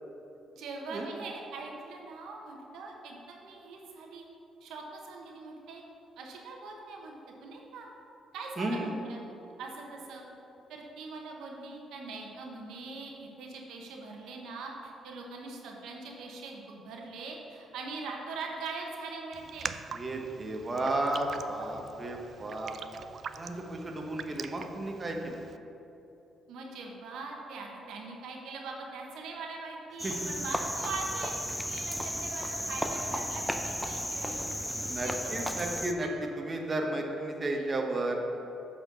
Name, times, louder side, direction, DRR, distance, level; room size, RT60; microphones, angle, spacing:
voice 1, 0.5-4.3 4.6-5.8 6.2-7.1 7.4-7.9 8.3-9.2 9.6-10.2 10.7-19.7 26.5-34.5 37.5-37.6, right 3 dB, 85° right, 0 dB, 1.0 m, -42 dB
voice 2, 8.6-8.9 19.9-22.7 23.4-25.4 30.0-30.1 34.2-34.3 34.8-36.1 36.4-38.2, right 2 dB, 30° right, 1 dB, 1.0 m, -33 dB
Raindrop, 19.3-25.6, right 6 dB, 55° right, 0.3 m, -44 dB
Cricket, 30.0-35.9, equal, ahead, 0.5 m, -34 dB
7.8 x 4.3 x 6.7 m, 2.9 s
cardioid pair, 90°, 0 cm